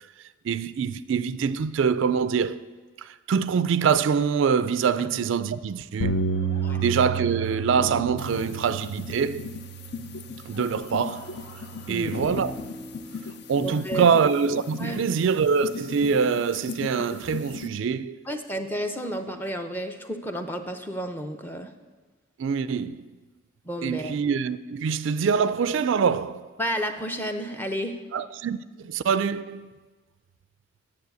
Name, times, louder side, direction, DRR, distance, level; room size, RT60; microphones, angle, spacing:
voice 1, 0.4-2.6 3.0-6.2 6.7-9.5 10.5-11.3 11.9-12.6 13.5-18.2 22.4-23.0 23.8-26.5 28.1-29.7, right 6 dB, 65° right, 0.3 m, -24 dB
Bass guitar, 6.0-10.5 11.1-12.2, right 5 dB, 90° left, 0.7 m, -31 dB
sound 1, 6.1-9.4 10.5-13.8, left 1 dB, 70° left, 1.8 m, -42 dB
sound 2, 8.2-17.7, left 5 dB, 50° left, 0.6 m, -38 dB
voice 2, 13.6-14.0 14.8-15.1 18.3-21.7 23.6-24.2 26.6-28.0, equal, 10° left, 0.6 m, -31 dB
9.5 x 7.0 x 8.2 m
head